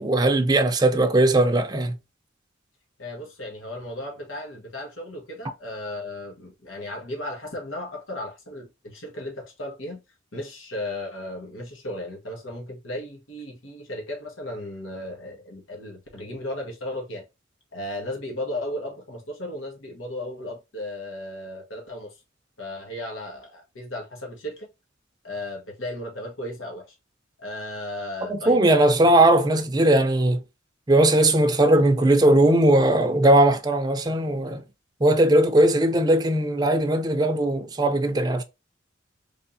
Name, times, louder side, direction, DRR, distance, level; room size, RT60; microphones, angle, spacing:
voice 1, 0.0-2.0 28.3-30.4 30.9-34.6 35.0-38.4, right 1 dB, 20° right, 0.5 m, -19 dB
voice 2, 3.0-10.0 10.3-17.3 17.7-22.2 22.6-24.7 25.2-26.9 27.4-29.0, left 1 dB, 90° left, 1.4 m, -35 dB
3.5 x 3.5 x 2.7 m
head